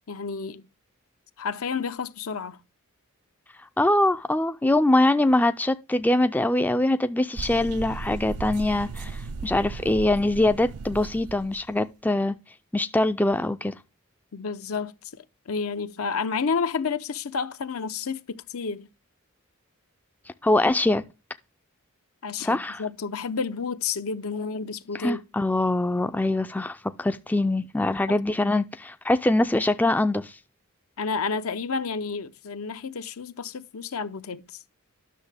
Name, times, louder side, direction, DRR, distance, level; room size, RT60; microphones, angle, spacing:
voice 1, 0.1-0.7 1.4-2.6 14.3-18.9 22.2-25.2 31.0-34.6, left 5 dB, 75° left, 0.7 m, -30 dB
voice 2, 3.8-12.4 12.7-13.7 20.4-21.0 22.4-22.8 24.9-30.3, left 1 dB, 10° left, 0.4 m, -23 dB
sound 1, 7.4-11.7, right 4 dB, 85° right, 0.5 m, -36 dB
10.0 x 6.5 x 3.4 m
head